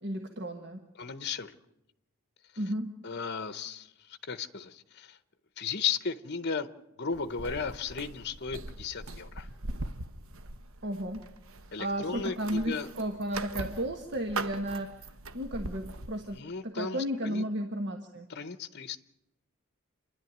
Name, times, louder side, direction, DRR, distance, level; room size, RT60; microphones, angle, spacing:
voice 1, 0.0-0.8 2.6-2.9 10.8-11.2 11.8-15.1 15.3-16.4 16.6-18.3, right 1 dB, 50° right, 4 dB, 1.4 m, -33 dB
voice 2, 1.0-1.6 3.0-5.2 5.6-6.7 7.0-9.5 11.7-12.9 16.3-17.4 18.3-19.0, left 5 dB, 50° left, 12 dB, 0.8 m, -35 dB
sound 1, 7.1-16.4, right 2 dB, 70° right, 0.9 m, -41 dB
28.5 x 11.5 x 9.3 m, 0.92 s
head